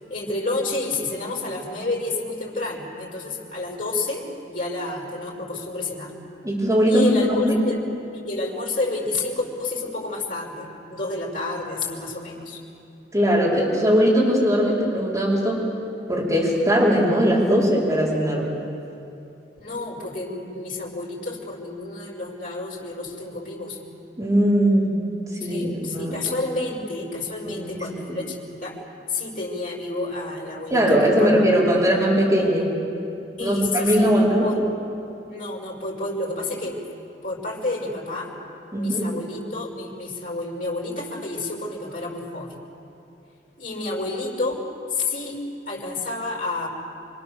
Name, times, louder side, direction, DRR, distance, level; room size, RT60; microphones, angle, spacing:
voice 1, 0.1-6.1 6.9-7.8 8.1-12.6 19.6-23.8 25.4-28.8 29.1-31.3 33.4-34.1 34.4-34.6 35.3-36.8 37.2-38.3 38.7-42.6 43.6-45.4 45.7-46.7, left 2 dB, 45° left, -4 dB, 5.3 m, -30 dB
voice 2, 6.4-7.6 13.1-15.7 16.1-18.5 24.2-24.9 25.4-26.1 27.4-28.2 30.7-32.7 33.4-34.5 38.7-39.2, equal, 20° right, -6 dB, 5.2 m, -20 dB
26.5 x 25.0 x 7.1 m, 2.7 s
head